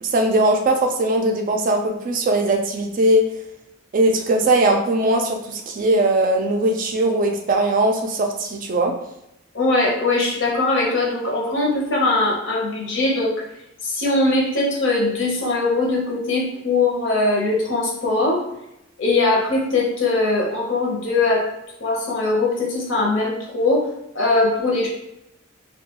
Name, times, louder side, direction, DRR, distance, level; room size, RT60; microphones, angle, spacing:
voice 1, 0.0-3.3 3.9-8.9, right 1 dB, 40° right, 3 dB, 0.3 m, -19 dB
voice 2, 9.5-13.3 13.8-18.4 19.0-21.5 21.8-23.9 24.1-24.9, left 2 dB, 65° left, -2 dB, 0.8 m, -21 dB
2.3 x 2.2 x 2.8 m, 0.85 s
head